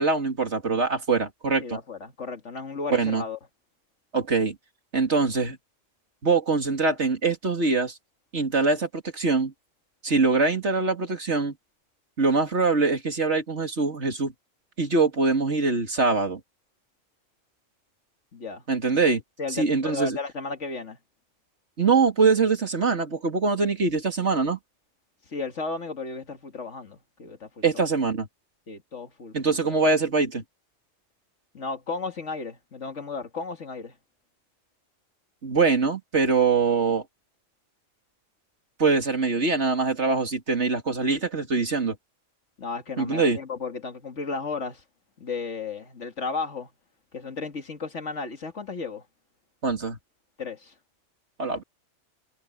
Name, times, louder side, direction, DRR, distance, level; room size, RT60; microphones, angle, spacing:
voice 1, 0.0-1.8 2.9-3.2 4.1-4.6 4.9-5.6 6.2-8.0 8.3-9.5 10.0-11.5 12.2-14.3 14.8-16.4 18.7-19.2 19.5-20.2 21.8-24.6 27.6-28.3 29.3-30.4 35.4-37.0 38.8-42.0 43.0-43.4 49.6-50.0 51.4-51.6, right 4 dB, 65° right, 2.8 m, -23 dB
voice 2, 1.6-3.4 18.3-18.6 19.4-21.0 25.3-27.8 28.7-29.8 31.5-34.0 42.6-44.8 45.2-46.7 47.1-49.1 50.4-50.7, left 4 dB, 75° left, 2.3 m, -34 dB
omnidirectional pair, 1.3 m